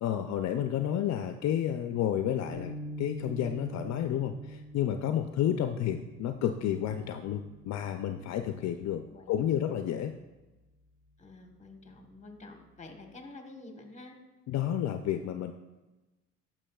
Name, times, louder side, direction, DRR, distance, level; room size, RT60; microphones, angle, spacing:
voice 1, 0.0-2.7 3.0-9.0 9.3-10.1 14.5-15.5, left 10 dB, 65° left, 7 dB, 0.4 m, -31 dB
sound 1, 2.5-8.9, right 1 dB, 70° right, 2.5 m, -45 dB
voice 2, 8.4-9.6 11.2-14.2, left 2 dB, 25° left, 4 dB, 1.2 m, -50 dB
9.9 x 6.1 x 2.3 m, 1.1 s
cardioid pair, 90°, 30 cm